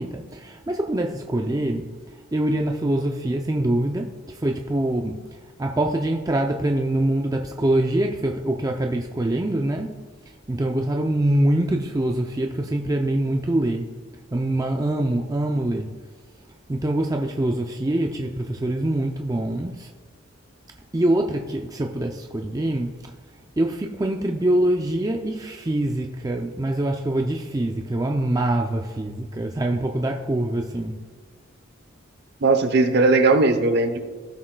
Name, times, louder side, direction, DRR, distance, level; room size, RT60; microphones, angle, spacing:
voice 1, 0.0-1.9 2.3-5.2 5.6-9.9 10.5-13.9 14.3-15.9 16.7-19.9 20.9-23.0 23.6-31.0, right 1 dB, 15° right, 2 dB, 0.4 m, -24 dB
voice 2, 32.4-34.0, right 3 dB, 50° right, 8 dB, 0.8 m, -18 dB
15.0 x 6.3 x 2.2 m, 1.6 s
head